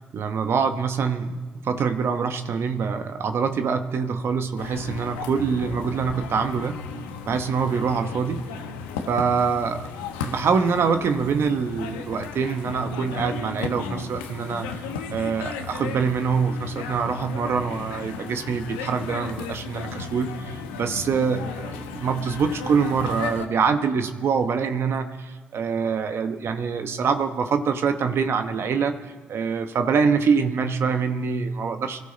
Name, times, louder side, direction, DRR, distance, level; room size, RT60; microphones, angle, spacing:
voice 1, 0.1-6.8 7.3-8.4 9.1-9.9 10.2-14.7 15.1-29.0 29.3-32.0, right 5 dB, 60° right, 7 dB, 1.1 m, -25 dB
sound 1, 4.6-23.5, left 5 dB, 90° left, 1.0 m, -35 dB
25.0 x 13.5 x 4.0 m, 1.4 s
hypercardioid pair, 45°, 5 cm